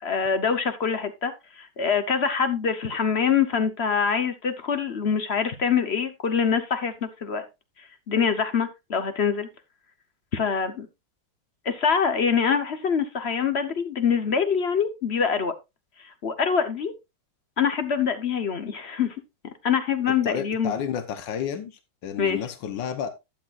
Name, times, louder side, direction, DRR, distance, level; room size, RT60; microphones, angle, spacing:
voice 1, 0.0-7.5 8.1-9.5 10.3-10.9 11.6-15.5 16.0-16.9 17.6-19.1 19.6-20.7 22.2-22.4, left 6 dB, 45° left, 0.9 m, -24 dB
voice 2, 20.2-23.1, left 8 dB, 85° left, 1.7 m, -31 dB
12.0 x 8.6 x 2.4 m
omnidirectional pair, 1.9 m